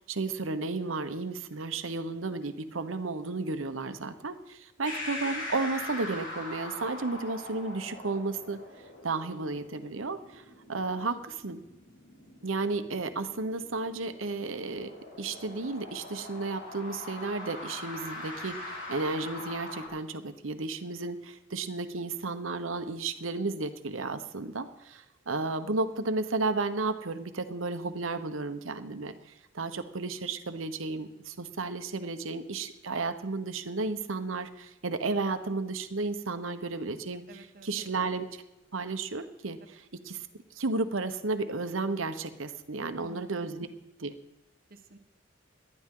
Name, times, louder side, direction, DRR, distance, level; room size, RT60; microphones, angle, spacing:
voice 1, 0.1-8.6 9.0-10.4 10.7-11.6 12.4-37.2 37.6-38.4 38.7-39.6 40.1-40.2 40.5-43.7 44.0-44.1, right 3 dB, 80° right, 10 dB, 1.0 m, -33 dB
sound 1, 4.8-19.9, left 2 dB, 65° left, 4.2 m, -42 dB
voice 2, 37.3-37.9 39.6-39.7 42.9-43.5 44.7-45.0, right 2 dB, 50° right, 7 dB, 1.3 m, -50 dB
19.0 x 12.0 x 3.8 m, 0.92 s
head